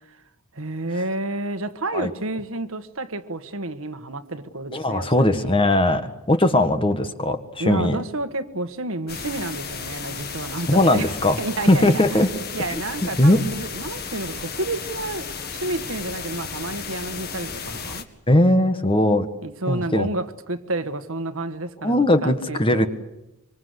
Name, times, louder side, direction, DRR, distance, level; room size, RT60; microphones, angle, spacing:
voice 1, 0.5-5.6 7.6-11.1 11.4-12.2 12.5-18.1 19.4-22.9, right 2 dB, 70° right, 1.6 m, -30 dB
voice 2, 4.7-8.0 10.7-11.4 11.7-12.3 13.0-13.4 18.3-19.3 19.7-20.1 21.8-22.9, left 1 dB, 25° left, 1.7 m, -19 dB
sound 1, 9.1-18.0, left 5 dB, 45° left, 1.9 m, -34 dB
25.0 x 25.0 x 8.1 m
head